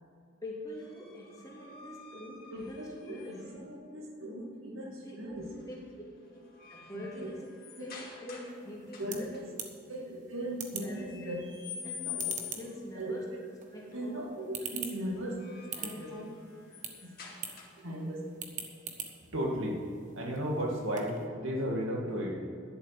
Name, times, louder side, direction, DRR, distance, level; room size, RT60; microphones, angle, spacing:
voice 1, 0.4-3.4 4.8-5.3 5.7-5.8 6.7-7.5 7.8-9.3 9.9-10.0 10.8-11.0 11.8-13.2 13.7-14.2 15.7-16.1, left 1 dB, 20° left, -5 dB, 2.9 m, -45 dB
sound 1, 0.7-3.6 5.4-5.7 6.2-8.6 8.9-9.4 10.9-12.8 15.1-18.0, left 8 dB, 50° left, 2.4 m, -46 dB
voice 2, 2.5-5.6 6.9-7.3 7.8-7.9 9.0-9.4 9.9-11.4 12.0-12.3 12.9-13.4 13.9-16.3 17.0-17.2 17.8-18.3 19.2-19.8 20.1-22.4, equal, 85° right, -1 dB, 2.3 m, -36 dB
sound 2, 8.5-21.3, right 7 dB, 40° right, 1.2 m, -46 dB
12.0 x 7.2 x 7.6 m, 2.5 s
head